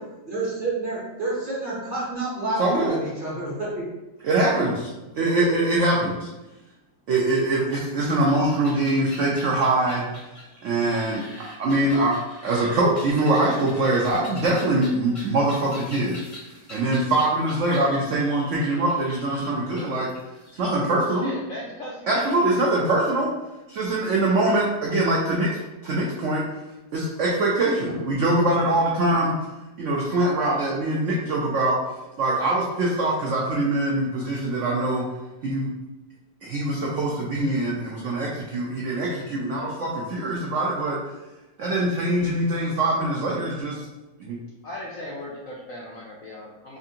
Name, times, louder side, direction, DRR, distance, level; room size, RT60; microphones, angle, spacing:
voice 1, 0.3-3.8 4.5-4.6 27.9-28.0, right 2 dB, 45° right, -7 dB, 0.7 m, -29 dB
voice 2, 2.6-2.9 4.2-4.9 5.2-6.3 7.1-10.1 10.6-12.1 12.4-16.2 16.7-20.1 20.5-21.3 22.1-23.3 23.7-26.4 26.9-29.3 29.8-31.7 32.2-35.0 35.4-35.7 36.4-41.0 41.6-43.8 44.2-44.4, right 2 dB, 85° right, -4 dB, 0.6 m, -23 dB
sound 1, 8.6-20.5, left 1 dB, 30° left, 0.6 m, -44 dB
voice 3, 21.1-22.4 44.6-46.8, left 1 dB, 70° left, -4 dB, 0.7 m, -37 dB
4.4 x 2.4 x 2.7 m, 1.0 s
omnidirectional pair, 2.0 m